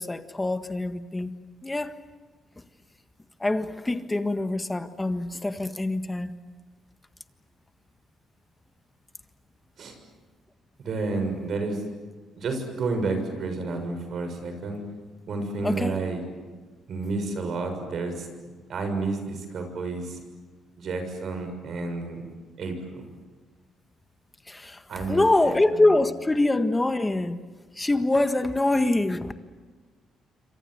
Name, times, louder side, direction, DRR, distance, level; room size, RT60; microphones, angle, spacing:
voice 1, 0.0-1.3 1.6-1.9 3.4-6.3 15.6-16.0 24.5-27.4 27.7-29.3, left 2 dB, 15° left, 1.7 m, -24 dB
voice 2, 10.8-11.8 12.4-14.8 15.3-16.2 16.9-18.3 18.7-20.2 20.8-22.2 22.6-23.0 24.9-25.8, right 3 dB, 60° right, 6.6 m, -30 dB
27.5 x 25.5 x 8.0 m
cardioid pair, 90°, 0 cm